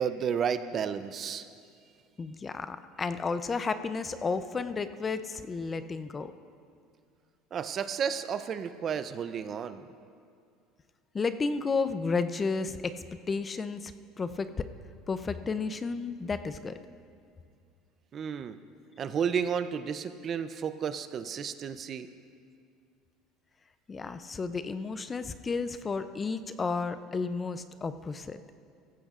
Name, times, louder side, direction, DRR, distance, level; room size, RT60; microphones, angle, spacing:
voice 1, 0.0-1.4 7.5-9.8 18.1-18.6 19.0-22.1, right 7 dB, 40° right, 11 dB, 0.5 m, -32 dB
voice 2, 2.2-6.3 11.1-12.9 13.3-13.9 14.2-14.7 15.1-16.8 23.9-28.4, left 4 dB, 25° left, 11 dB, 0.5 m, -32 dB
15.0 x 15.0 x 2.5 m, 2.3 s
supercardioid pair, 110°, 0 cm